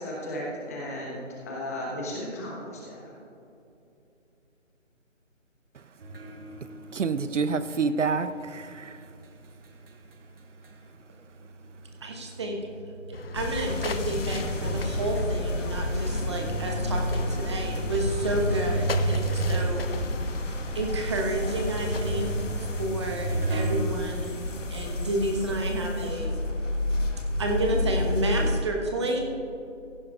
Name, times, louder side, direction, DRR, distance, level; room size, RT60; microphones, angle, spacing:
voice 1, 0.0-3.2, left 1 dB, 10° left, -4 dB, 1.1 m, -35 dB
sound 1, 6.0-11.0 11.3-16.0 16.6-16.7 17.4-23.8, right 2 dB, 50° right, 1.1 m, -34 dB
voice 2, 6.9-9.0, right 5 dB, 70° right, 13 dB, 0.6 m, -27 dB
voice 3, 12.0-12.6 13.1-19.9 20.7-22.3 22.6-24.3 24.7-26.3 27.4-29.2, right 1 dB, 20° right, 1 dB, 1.1 m, -30 dB
sound 2, 13.1-22.9, left 4 dB, 50° left, 0.6 m, -40 dB
sound 3, 13.3-28.6, left 1 dB, 70° left, 1.5 m, -30 dB
15.5 x 11.5 x 2.4 m, 2.7 s
figure-of-eight pair, 160°, 38 cm